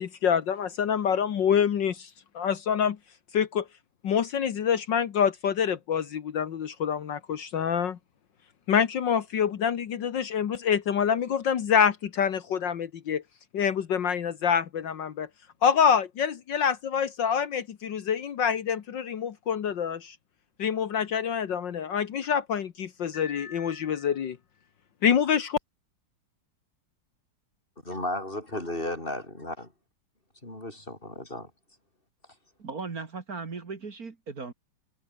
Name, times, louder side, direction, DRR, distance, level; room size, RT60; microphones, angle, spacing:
voice 1, 0.0-2.1 2.4-3.0 3.3-3.6 4.0-8.0 8.7-13.2 13.5-15.3 15.6-20.2 20.6-24.4 25.0-25.6, left 7 dB, 70° left, 2.0 m, -26 dB
voice 2, 27.8-29.7 30.4-31.5, left 1 dB, 25° left, 6.0 m, -34 dB
voice 3, 32.6-34.5, right 4 dB, 50° right, 2.6 m, -37 dB
omnidirectional pair, 2.1 m